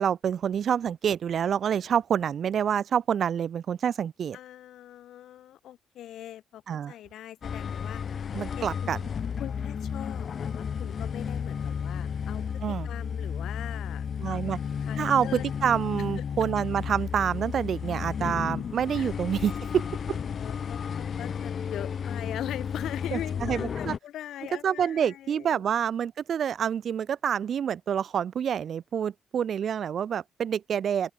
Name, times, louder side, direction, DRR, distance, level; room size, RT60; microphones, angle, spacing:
voice 1, 0.0-4.4 6.7-6.9 8.3-9.0 12.6-12.9 14.2-14.6 15.0-20.2 23.1-23.9 24.6-31.1, right 8 dB, 50° right, 0.4 m, -27 dB
voice 2, 4.3-6.6 6.9-8.0 8.4-8.9 9.4-15.4 16.2-16.3 18.2-18.3 18.9-19.1 20.1-25.6, left 12 dB, 85° left, 1.3 m, -41 dB
sound 1, 7.4-24.0, left 7 dB, 45° left, 0.3 m, -33 dB
open air
cardioid pair, 150°, 0 cm